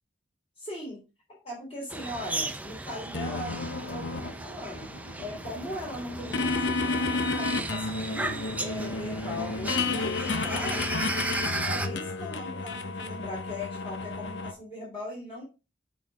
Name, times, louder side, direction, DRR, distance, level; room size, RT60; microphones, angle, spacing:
voice 1, 0.6-1.0 1.3-4.8 5.2-10.9 11.6-15.4, left 1 dB, 35° left, -5 dB, 3.5 m, -39 dB
sound 1, 1.9-11.9, right 2 dB, 10° right, 0.5 m, -35 dB
sound 2, 3.1-14.5, left 3 dB, 80° left, 0.8 m, -32 dB
7.0 x 5.5 x 3.7 m, 0.30 s
head